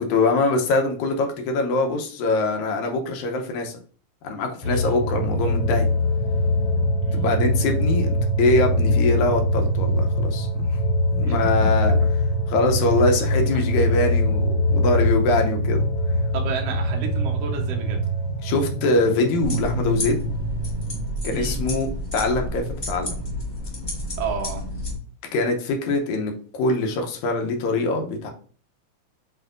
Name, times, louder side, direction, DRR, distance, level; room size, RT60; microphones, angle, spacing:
voice 1, 0.0-3.7 4.2-5.9 7.1-10.5 11.1-12.0 12.5-15.9 18.4-20.2 21.2-23.2 25.3-28.3, left 2 dB, 80° left, 3 dB, 2.1 m, -23 dB
sound 1, 4.6-22.1 22.5-22.6, left 1 dB, 65° left, 1.7 m, -23 dB
voice 2, 4.6-5.0 7.0-7.2 11.2-11.9 16.3-18.0 21.3-21.6 24.2-24.6, right 5 dB, 65° right, 1 dB, 1.8 m, -32 dB
sound 2, 19.4-24.9, left 1 dB, 30° left, 1.2 m, -29 dB
7.7 x 2.6 x 2.5 m, 0.43 s
omnidirectional pair, 3.4 m